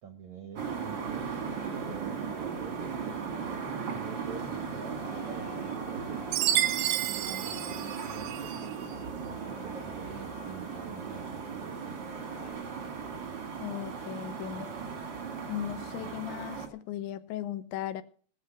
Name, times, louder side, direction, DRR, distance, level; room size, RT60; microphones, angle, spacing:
voice 1, 0.0-3.0 3.7-6.3 7.0-8.9 9.4-11.9, right 6 dB, 70° right, 6 dB, 1.8 m, -46 dB
sound 1, 0.6-3.3 3.8-11.7 12.1-12.5, left 8 dB, 65° left, 3.7 m, -53 dB
sound 2, 0.6-16.7, right 6 dB, 50° right, 1.4 m, -37 dB
Chime, 6.3-8.6, right 12 dB, 85° right, 3.0 m, -30 dB
voice 2, 13.6-14.7 15.5-18.0, left 11 dB, 85° left, 13 dB, 3.1 m, -37 dB
18.5 x 7.7 x 5.8 m, 0.44 s
omnidirectional pair, 5.1 m